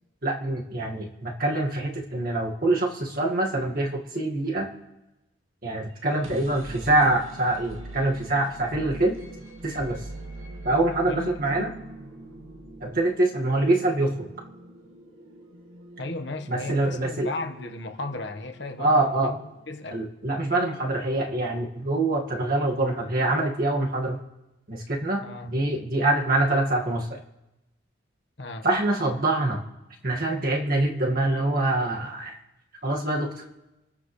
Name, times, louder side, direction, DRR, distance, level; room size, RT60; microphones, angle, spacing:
voice 1, 0.2-4.7 5.6-9.2 9.6-10.0 10.6-11.7 12.8-14.3 16.5-17.3 18.8-19.3 19.9-24.2 24.7-27.2 28.6-29.6 30.0-32.4 32.8-33.3, right 2 dB, 45° right, 0 dB, 2.0 m, -25 dB
sound 1, 6.0-19.8, right 1 dB, 90° right, 1.9 m, -44 dB
voice 2, 11.0-11.7 16.0-19.4 19.7-20.0 25.2-25.5 28.4-28.6, left 2 dB, 60° left, 4 dB, 1.5 m, -35 dB
28.0 x 13.5 x 3.3 m, 0.98 s
head